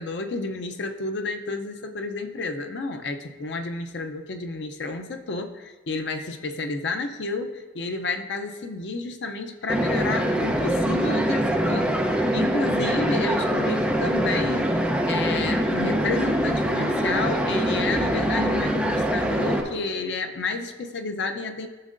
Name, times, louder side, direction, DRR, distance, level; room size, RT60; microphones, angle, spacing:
voice 1, 0.0-21.7, left 3 dB, 85° left, 6 dB, 0.6 m, -31 dB
sound 1, 9.7-19.6, equal, 5° right, 0.6 m, -24 dB
13.5 x 6.4 x 2.6 m, 1.3 s
head